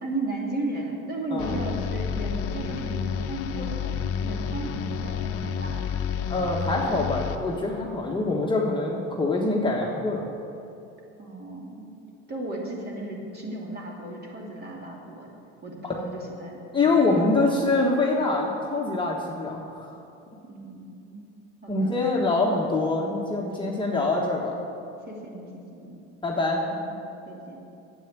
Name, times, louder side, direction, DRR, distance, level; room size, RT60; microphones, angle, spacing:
voice 1, 0.0-5.9 11.2-11.9 12.3-15.3 15.6-16.6 16.9-17.1 20.5-21.2 21.6-22.0 23.6-23.9 25.1-26.0 26.7-26.9 27.2-27.6, right 2 dB, 30° right, -2 dB, 2.7 m, -35 dB
sound 1, 1.4-7.7, left 7 dB, 45° left, 0.8 m, -30 dB
voice 2, 6.3-10.3 15.8-16.0 16.7-19.9 21.7-24.6 26.2-26.7, left 2 dB, 15° left, -2 dB, 1.3 m, -25 dB
9.1 x 8.0 x 7.4 m, 2.7 s
supercardioid pair, 100°, 31 cm